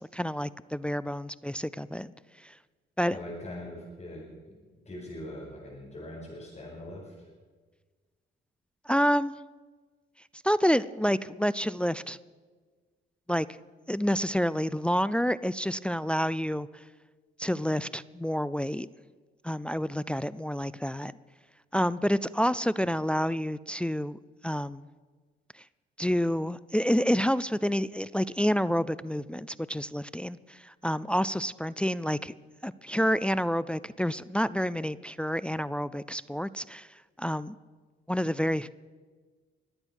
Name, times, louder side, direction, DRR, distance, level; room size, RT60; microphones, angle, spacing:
voice 1, 0.0-2.1 2.4-2.5 3.0-3.2 8.9-9.4 10.4-12.2 13.3-13.5 13.9-16.8 17.4-18.9 19.4-21.1 21.7-24.9 26.0-32.3 32.6-36.9 37.2-37.6 38.1-38.7, equal, 5° left, 17 dB, 0.4 m, -28 dB
voice 2, 3.1-4.6 4.8-7.3, left 1 dB, 35° left, -6 dB, 5.7 m, -42 dB
24.0 x 8.9 x 6.3 m, 1.4 s
cardioid pair, 90°, 20 cm